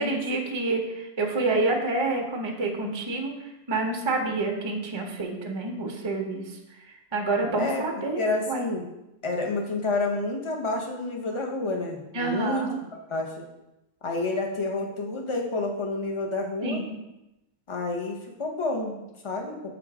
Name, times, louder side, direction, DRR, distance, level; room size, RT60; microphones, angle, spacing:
voice 1, 0.0-6.6 6.9-8.7 12.1-12.8 16.6-17.0, right 3 dB, 35° right, 2 dB, 0.4 m, -28 dB
voice 2, 8.2-8.8 9.2-13.4 14.0-16.8 17.7-19.6, left 2 dB, 30° left, 1 dB, 0.6 m, -29 dB
6.9 x 3.3 x 4.8 m, 0.93 s
omnidirectional pair, 1.7 m